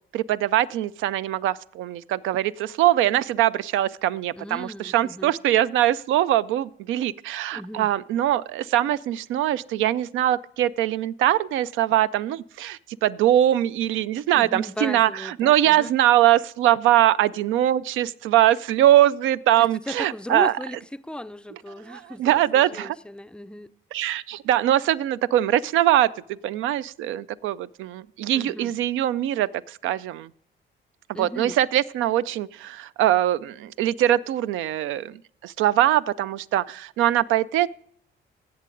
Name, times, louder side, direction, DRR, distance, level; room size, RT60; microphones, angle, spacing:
voice 1, 0.1-20.6 21.5-23.0 23.9-30.3 31.2-37.7, right 13 dB, 85° right, 0.4 m, -22 dB
voice 2, 4.4-5.3 7.5-7.9 14.3-15.9 19.9-20.8 21.1-22.2 22.5-23.7 28.4-28.7 31.1-31.6, left 1 dB, 5° left, 0.4 m, -36 dB
16.5 x 6.7 x 3.8 m
cardioid pair, 90°, 20 cm